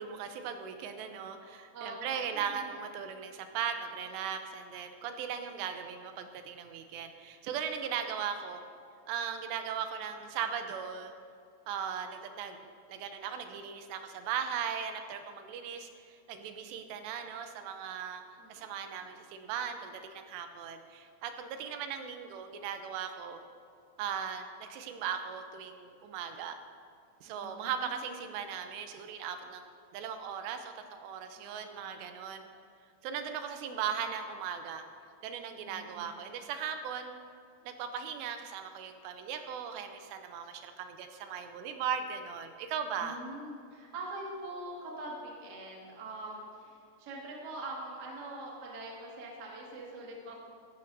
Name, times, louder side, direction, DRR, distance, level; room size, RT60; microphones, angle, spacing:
voice 1, 0.0-8.6 9.1-11.1 11.7-12.6 12.9-18.2 18.5-23.4 24.0-26.6 27.2-32.4 33.0-34.8 35.2-37.1 37.6-43.2, right 7 dB, 80° right, 7 dB, 2.8 m, -38 dB
voice 2, 1.7-2.7 18.4-19.1 27.3-28.1 31.4-32.2 35.6-36.2 43.0-50.4, right 2 dB, 55° right, -3 dB, 1.1 m, -44 dB
15.5 x 11.0 x 2.6 m, 2.4 s
omnidirectional pair, 5.1 m